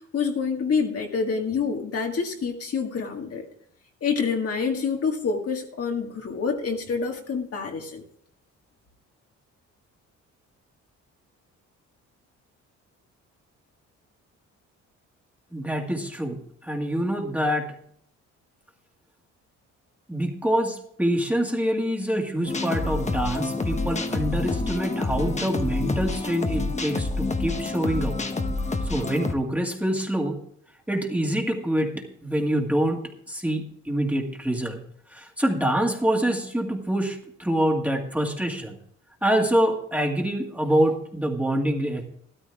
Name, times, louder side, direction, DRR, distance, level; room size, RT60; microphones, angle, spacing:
voice 1, 0.0-3.5 4.0-8.0, left 5 dB, 50° left, 2 dB, 1.9 m, -27 dB
voice 2, 15.5-17.7 20.1-28.2 28.8-30.4 30.9-33.0 33.3-34.8 35.1-38.8 39.2-42.1, right 1 dB, 5° right, 1 dB, 2.0 m, -25 dB
sound 1, 22.5-29.3, left 3 dB, 25° left, 1.1 m, -28 dB
13.0 x 13.0 x 3.5 m, 0.67 s
cardioid pair, 90°, 30 cm